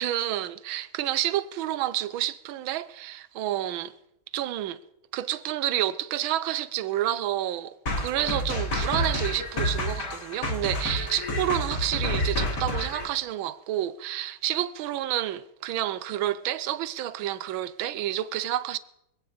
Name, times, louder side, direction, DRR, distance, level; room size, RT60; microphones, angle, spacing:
voice 1, 0.0-3.9 4.3-4.8 5.1-18.8, right 13 dB, 75° right, 1.5 m, -29 dB
sound 1, 7.9-13.1, left 1 dB, 55° left, 2.7 m, -29 dB
24.5 x 8.8 x 5.0 m
omnidirectional pair, 2.3 m